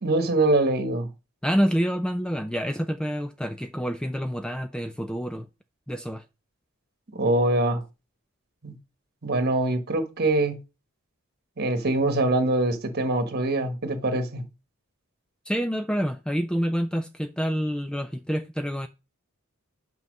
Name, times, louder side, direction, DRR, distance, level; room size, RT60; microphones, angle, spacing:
voice 1, 0.0-1.1 7.1-7.8 8.6-8.7 9.2-10.6 11.6-14.4, right 2 dB, 50° right, 1.4 m, -24 dB
voice 2, 1.4-5.5 5.9-6.2 15.5-18.9, equal, 5° left, 0.3 m, -27 dB
5.9 x 5.4 x 5.3 m
head